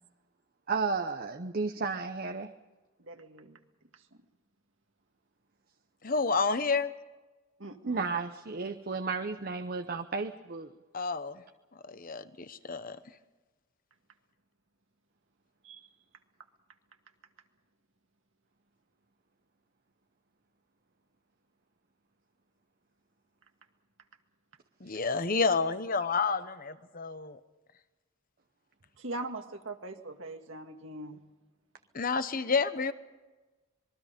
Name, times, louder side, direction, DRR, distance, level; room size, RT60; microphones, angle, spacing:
voice 1, 0.7-2.5 7.9-10.7, right 4 dB, 45° right, 7 dB, 0.8 m, -33 dB
voice 2, 3.0-3.6 7.6-8.1 15.6-15.9 29.0-31.2, right 2 dB, 65° right, 5 dB, 1.8 m, -41 dB
voice 3, 6.0-6.9 10.9-11.4 11.9-13.0 24.8-27.4 31.9-32.9, left 4 dB, 40° left, 12 dB, 1.0 m, -29 dB
26.5 x 21.5 x 5.2 m, 1.2 s
head